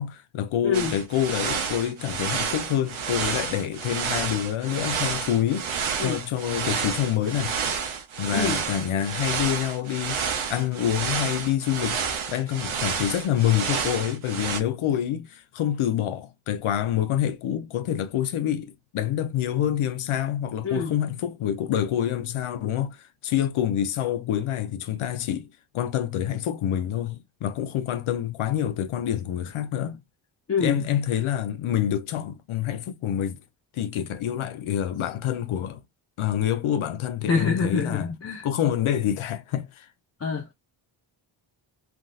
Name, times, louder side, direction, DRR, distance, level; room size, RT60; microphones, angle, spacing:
voice 1, 0.0-5.7 6.0-7.6 8.2-12.0 12.3-25.5 25.7-30.0 30.6-33.4 33.7-35.8 36.2-38.1 38.4-39.9, left 10 dB, 90° left, 0.8 m, -27 dB
voice 2, 0.6-1.0 6.0-6.2 8.3-8.6 20.6-21.0 30.5-30.8 37.3-38.5 40.2-40.5, left 5 dB, 30° left, 0.7 m, -26 dB
sound 1, 0.7-14.6, right 6 dB, 85° right, 1.0 m, -30 dB
3.5 x 2.7 x 2.3 m
wide cardioid pair, 130°, 47 cm